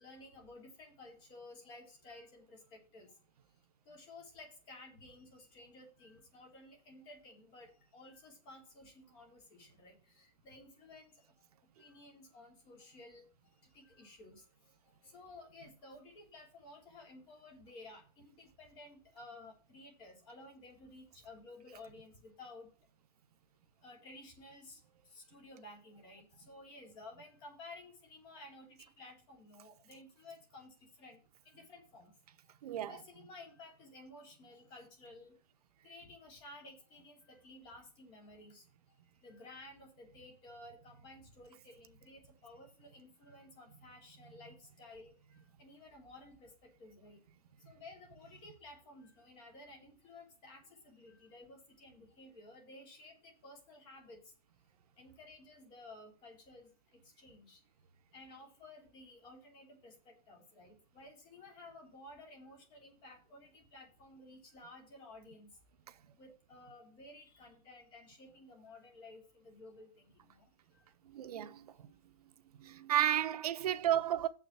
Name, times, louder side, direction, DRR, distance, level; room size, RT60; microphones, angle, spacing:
voice 1, 0.0-3.1 3.9-11.1 11.8-13.2 13.7-14.4 15.0-22.7 23.8-24.8 25.1-30.7 31.0-31.2 31.4-32.1 32.9-35.3 35.8-38.6 39.2-45.1 45.6-46.5 46.8-47.2 47.6-54.2 55.0-56.7 57.2-57.6 58.1-65.5 66.2-70.4 70.7-70.8, left 2 dB, 25° left, 3.4 m, -54 dB
voice 2, 32.6-32.9 71.1-71.7 72.6-74.3, right 11 dB, 65° right, 0.9 m, -32 dB
7.2 x 6.0 x 7.4 m
supercardioid pair, 175°, 20 cm